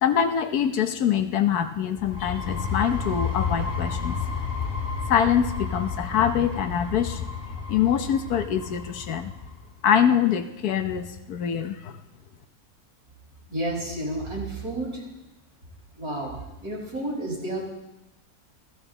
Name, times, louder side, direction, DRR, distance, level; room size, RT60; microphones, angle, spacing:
voice 1, 0.0-4.1 5.1-7.3 7.7-9.3 9.8-11.9, left 8 dB, 80° left, 9 dB, 1.4 m, -24 dB
sound 1, 2.0-9.6, left 5 dB, 35° left, 3.7 m, -31 dB
voice 2, 13.5-15.0 16.0-17.6, right 1 dB, 75° right, -3 dB, 5.4 m, -31 dB
16.0 x 14.5 x 3.9 m, 0.96 s
omnidirectional pair, 1.6 m